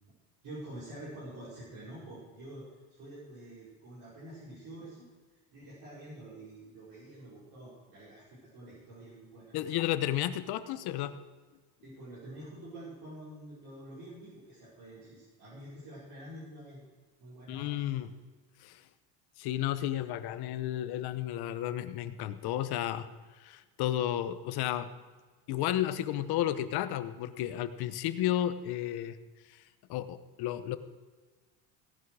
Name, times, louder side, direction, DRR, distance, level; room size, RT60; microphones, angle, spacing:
voice 1, 0.4-5.1 5.5-9.8 11.8-16.8 17.2-18.0, right 1 dB, 50° right, -9 dB, 5.6 m, -47 dB
voice 2, 9.5-11.1 17.5-18.1 18.6-18.8 19.4-23.1 23.4-24.9 25.5-29.2 29.5-29.6 29.9-30.8, left 12 dB, 60° left, 12 dB, 1.1 m, -32 dB
17.5 x 11.0 x 4.9 m, 1.4 s
cardioid pair, 160°, 44 cm